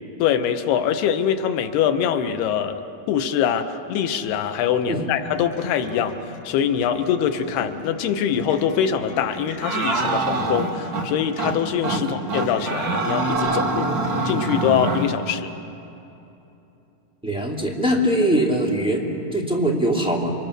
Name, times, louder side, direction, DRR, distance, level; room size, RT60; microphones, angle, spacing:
voice 1, 0.2-2.8 3.1-14.0 14.2-15.5, left 8 dB, 90° left, 7 dB, 3.2 m, -23 dB
Acoustic guitar, 5.4-13.3, left 2 dB, 65° left, 5.9 m, -40 dB
sound 1, 9.6-11.1 11.4-11.6 11.8-12.0 12.3-15.1, right 3 dB, 40° right, 1.3 m, -24 dB
voice 2, 17.2-20.3, right 1 dB, ahead, -2 dB, 2.0 m, -22 dB
29.5 x 24.0 x 6.7 m, 2.9 s
omnidirectional pair, 4.4 m